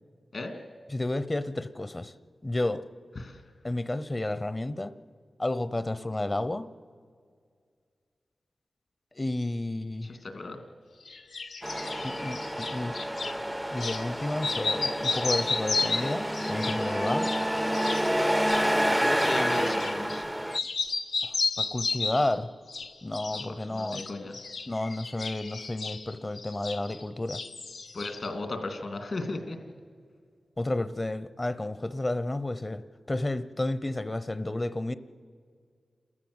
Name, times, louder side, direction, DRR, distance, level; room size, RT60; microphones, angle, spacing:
voice 1, 0.9-2.1 2.4-2.8 3.6-4.9 5.4-6.7 9.1-10.1 12.0-12.9 13.7-17.3 21.2-22.5 23.0-24.0 24.7-27.4 30.6-32.8 33.1-34.9, left 2 dB, 30° left, 15 dB, 0.8 m, -31 dB
voice 2, 10.0-10.6 19.0-20.2 23.3-23.4 23.7-24.4 27.9-29.6, left 2 dB, 65° left, 5 dB, 2.6 m, -35 dB
sound 1, 11.1-13.4 13.8-14.0 14.4-20.2 20.5-22.3 22.7-23.5 23.8-27.0 27.3-28.3, left 4 dB, 85° left, 1.1 m, -33 dB
Truck, 11.6-20.6, equal, 5° right, 0.5 m, -29 dB
28.5 x 13.5 x 8.0 m, 2.1 s
cardioid pair, 65°, 0 cm